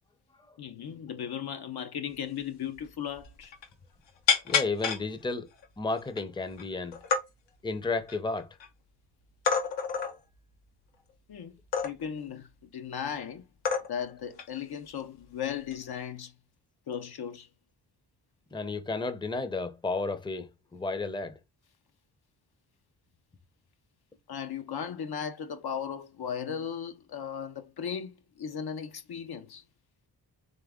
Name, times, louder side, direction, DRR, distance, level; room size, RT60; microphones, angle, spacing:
voice 1, 0.6-3.5 11.3-11.5 11.8-13.4 13.9-16.3 16.9-17.5 24.3-29.6, left 8 dB, 60° left, 0.8 m, -36 dB
sound 1, 2.4-2.5 2.7-2.9 3.2-3.7 4.3-5.0 5.6-5.7 6.1-6.6 6.9-7.2 7.8-8.7 9.4-10.2 11.7-12.2 13.1-13.2 13.6-14.1 14.4-14.6 15.6-16.0, left 6 dB, 80° left, 1.1 m, -28 dB
voice 2, 4.4-5.5 5.8-7.0 7.6-8.6 18.5-21.4, left 3 dB, 10° left, 0.7 m, -32 dB
3.7 x 3.4 x 3.6 m
cardioid pair, 65°, 43 cm